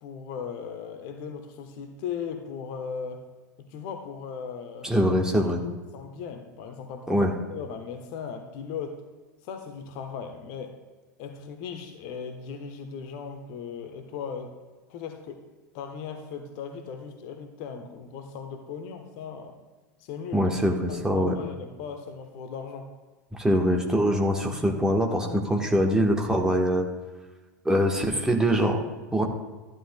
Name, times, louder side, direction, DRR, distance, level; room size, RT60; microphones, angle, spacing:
voice 1, 0.0-3.3 3.6-4.9 5.9-9.0 9.4-10.8 11.2-14.5 14.9-15.4 15.7-19.6 20.0-20.5 20.9-22.9, left 6 dB, 45° left, 6 dB, 1.0 m, -38 dB
voice 2, 4.8-5.6 7.1-7.3 20.3-21.3 23.4-26.9 27.6-28.8 29.1-29.2, equal, 5° right, 1 dB, 1.2 m, -23 dB
14.0 x 10.5 x 2.2 m, 1.3 s
figure-of-eight pair, 85°, 10 cm